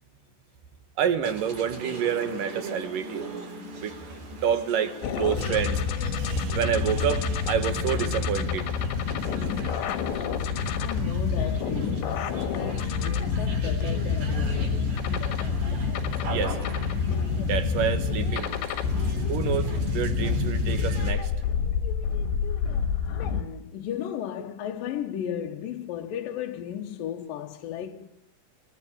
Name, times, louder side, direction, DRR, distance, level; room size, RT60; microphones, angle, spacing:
voice 1, 1.0-3.2 3.8-3.9 4.4-8.7 16.3-16.6 17.4-18.5 19.3-21.3, right 8 dB, 60° right, 3.0 m, -28 dB
sound 1, 1.2-21.1, right 3 dB, 40° right, 5.3 m, -42 dB
sound 2, 5.0-23.4, left 5 dB, 85° left, 3.9 m, -27 dB
voice 2, 9.7-14.9 23.3-28.1, left 10 dB, 70° left, 2.4 m, -35 dB
26.5 x 22.5 x 8.8 m
omnidirectional pair, 4.9 m